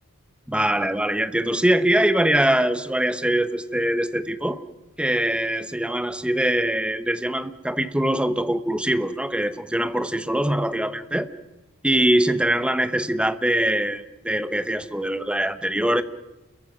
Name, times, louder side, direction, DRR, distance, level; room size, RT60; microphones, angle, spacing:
voice 1, 0.5-4.6 5.0-11.3 11.8-16.0, right 1 dB, 5° right, 11 dB, 1.1 m, -23 dB
29.5 x 22.5 x 6.1 m, 1.0 s
head